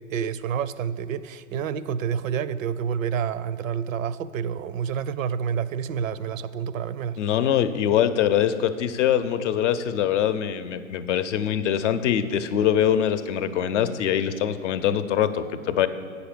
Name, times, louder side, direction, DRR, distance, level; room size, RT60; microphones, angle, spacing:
voice 1, 0.1-7.2, right 7 dB, 75° right, 16 dB, 0.5 m, -28 dB
voice 2, 7.2-15.9, left 9 dB, 60° left, 12 dB, 0.7 m, -23 dB
8.3 x 5.2 x 6.7 m, 2.2 s
hypercardioid pair, 105°, 41 cm